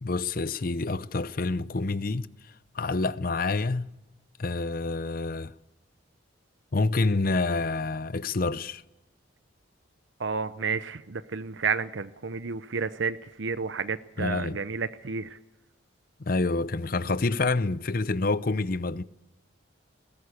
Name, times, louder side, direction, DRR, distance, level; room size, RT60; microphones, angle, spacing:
voice 1, 0.0-2.3 2.7-3.9 4.4-5.5 6.7-8.8 14.2-14.6 16.2-19.0, left 3 dB, 50° left, 0.6 m, -27 dB
voice 2, 10.2-15.4, right 5 dB, 75° right, 0.8 m, -31 dB
20.5 x 16.5 x 8.4 m
head